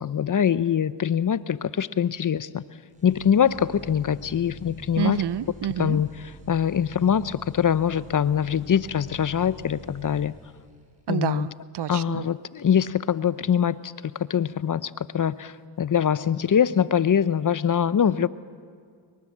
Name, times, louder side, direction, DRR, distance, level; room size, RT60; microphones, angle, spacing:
voice 1, 0.0-2.6 3.0-5.2 5.8-6.1 6.5-10.3 11.1-11.5 11.9-13.8 14.3-15.5 15.8-18.3, left 8 dB, 40° left, 17 dB, 0.8 m, -23 dB
sound 1, 2.9-10.9, equal, 15° right, 6.5 m, -46 dB
voice 2, 5.0-6.0 11.1-12.3, right 10 dB, 55° right, 17 dB, 0.9 m, -28 dB
24.0 x 23.5 x 7.4 m, 2.1 s
supercardioid pair, 55°, 49 cm